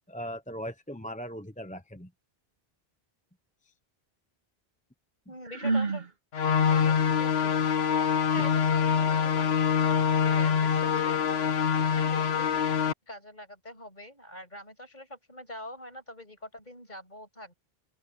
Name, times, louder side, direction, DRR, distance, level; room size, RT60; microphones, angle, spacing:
voice 1, 0.1-2.1 8.4-8.5, equal, 10° left, 1.0 m, -39 dB
voice 2, 5.3-6.0 6.7-7.7 8.3-11.3 11.9-12.5 13.1-17.5, left 1 dB, 45° left, 6.9 m, -44 dB
Sigh, 5.4-6.1, right 3 dB, 65° right, 2.5 m, -28 dB
sound 1, 6.3-12.9, left 7 dB, 75° left, 1.2 m, -25 dB
open air
omnidirectional pair, 1.1 m